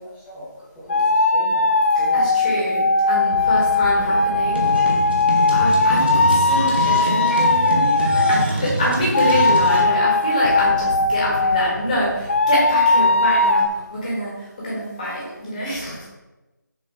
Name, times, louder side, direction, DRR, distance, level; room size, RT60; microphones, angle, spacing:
voice 1, 0.0-2.6 3.9-4.6 6.0-6.9 11.4-11.7, equal, ahead, -18 dB, 0.8 m, -38 dB
sound 1, 0.8-1.7 3.3-8.4 8.7-8.9 10.4-14.2, right 1 dB, 70° right, 1.1 m, -38 dB
sound 2, 0.9-8.5 9.1-11.8 12.3-13.7, left 3 dB, 40° left, 0.4 m, -18 dB
voice 2, 2.1-4.6 5.5-16.1, equal, 25° left, -6 dB, 1.8 m, -25 dB
sound 3, 4.5-9.8, right 2 dB, 30° right, 0.9 m, -25 dB
6.7 x 4.6 x 3.1 m, 1.0 s
figure-of-eight pair, 170°, 10 cm